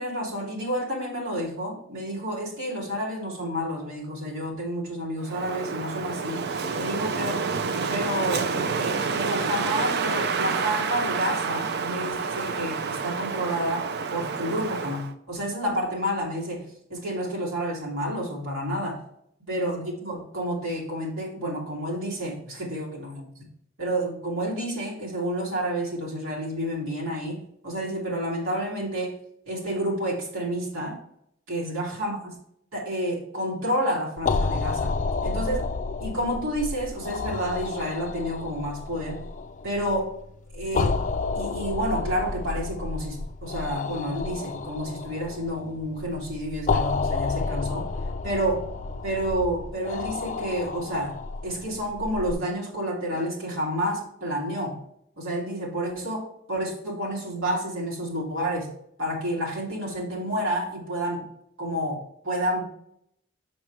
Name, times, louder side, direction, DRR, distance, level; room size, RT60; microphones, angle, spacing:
voice 1, 0.0-6.4 6.8-7.4 7.9-8.5 8.8-19.0 19.5-23.5 23.8-29.2 29.5-31.0 31.5-32.2 32.7-35.7 36.0-39.2 39.6-40.1 40.5-41.0 41.3-47.9 48.2-48.7 49.0-51.2 51.4-54.8 55.2-58.7 59.0-61.3 61.6-62.6, equal, 80° right, -3 dB, 2.2 m, -30 dB
Wind, 5.2-15.1, right 5 dB, 55° right, 0.5 m, -28 dB
sound 1, 34.2-52.3, left 4 dB, 40° left, 0.4 m, -31 dB
6.0 x 5.8 x 3.2 m, 0.73 s
head